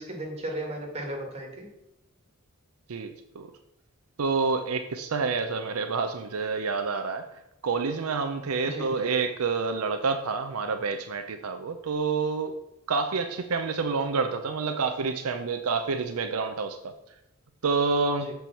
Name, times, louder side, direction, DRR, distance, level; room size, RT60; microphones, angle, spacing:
voice 1, 0.0-1.7 8.6-8.9 18.2-18.3, right 1 dB, 30° right, 0 dB, 1.8 m, -35 dB
voice 2, 2.9-3.5 4.2-7.3 7.6-12.5 12.9-16.9 17.6-18.3, right 4 dB, 75° right, 7 dB, 0.6 m, -28 dB
6.9 x 4.6 x 5.8 m, 0.88 s
head